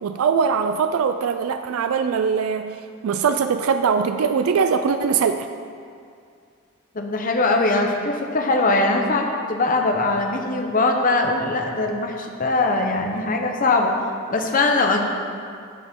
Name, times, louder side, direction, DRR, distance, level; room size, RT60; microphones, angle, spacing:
voice 1, 0.0-2.8 3.0-5.5, right 6 dB, 85° right, 8 dB, 0.4 m, -21 dB
voice 2, 6.9-14.0 14.3-15.1, left 2 dB, 40° left, 3 dB, 0.7 m, -21 dB
14.5 x 5.1 x 3.7 m, 2.3 s
head